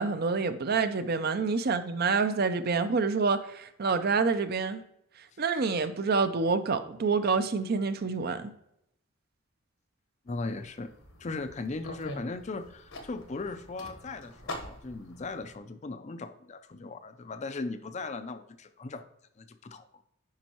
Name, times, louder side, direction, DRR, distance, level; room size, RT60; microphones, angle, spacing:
voice 1, 0.0-4.8 5.4-8.5, right 4 dB, 45° right, 10 dB, 0.5 m, -27 dB
sound 1, 10.3-15.6, left 1 dB, 75° left, 1.2 m, -44 dB
voice 2, 10.3-10.9 11.2-19.0 19.4-20.0, left 3 dB, 30° left, 10 dB, 0.4 m, -38 dB
9.5 x 5.4 x 3.0 m, 0.77 s
head